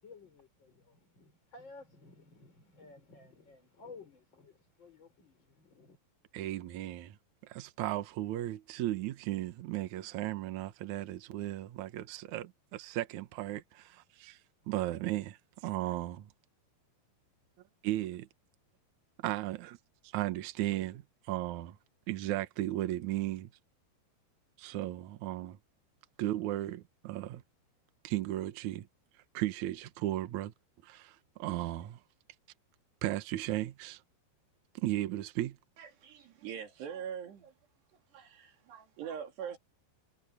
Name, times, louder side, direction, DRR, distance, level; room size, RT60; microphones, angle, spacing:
voice 1, 0.0-6.0, left 3 dB, 25° left, 6.3 m, -55 dB
voice 2, 6.3-7.2 7.4-14.4 14.7-16.3 17.8-18.3 19.2-19.8 20.0-21.8 22.1-23.5 24.6-25.6 26.2-27.4 28.0-28.9 29.3-30.5 30.8-32.0 33.0-34.0 34.7-35.6, right 15 dB, 90° right, 1.6 m, -35 dB
voice 3, 35.8-37.5 38.1-39.6, right 8 dB, 70° right, 5.0 m, -43 dB
omnidirectional pair, 5.1 m